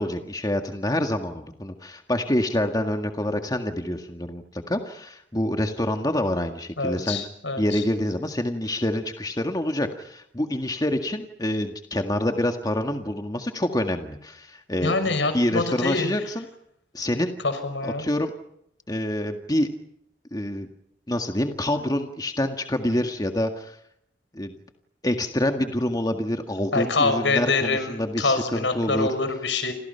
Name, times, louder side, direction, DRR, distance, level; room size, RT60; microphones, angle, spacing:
voice 1, 0.0-7.2 7.6-16.4 16.9-17.3 17.8-18.3 18.9-19.7 20.3-20.7 21.1-23.8 24.3-24.6 25.0-29.1, left 1 dB, 20° left, 5 dB, 1.8 m, -27 dB
voice 2, 6.8-7.8 14.8-16.2 17.4-18.0 26.7-29.7, left 3 dB, 75° left, 9 dB, 6.1 m, -25 dB
30.0 x 27.5 x 5.7 m, 0.75 s
head